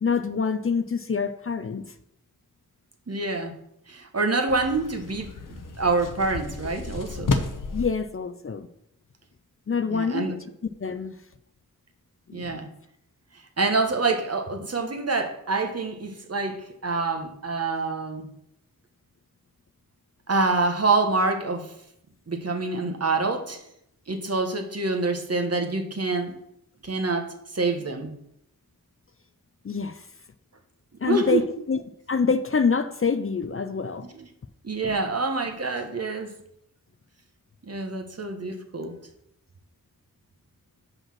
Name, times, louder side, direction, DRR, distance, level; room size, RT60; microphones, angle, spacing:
voice 1, 0.0-1.9 7.7-8.7 9.7-10.3 10.8-11.1 12.3-12.6 29.6-30.0 31.0-31.8 32.1-34.0, left 5 dB, 40° left, 9 dB, 0.5 m, -26 dB
voice 2, 3.1-3.5 3.9-7.3 9.9-10.4 12.3-12.7 13.6-18.3 20.3-21.7 22.3-23.6 24.1-26.3 26.8-27.3 27.5-28.1 31.0-31.4 34.1-34.3 34.6-36.3 37.6-38.9, right 3 dB, 45° right, 4 dB, 1.1 m, -26 dB
sound 1, 4.5-7.9, left 3 dB, 65° left, 0.9 m, -31 dB
5.7 x 5.4 x 5.9 m, 0.77 s
wide cardioid pair, 55°, 35 cm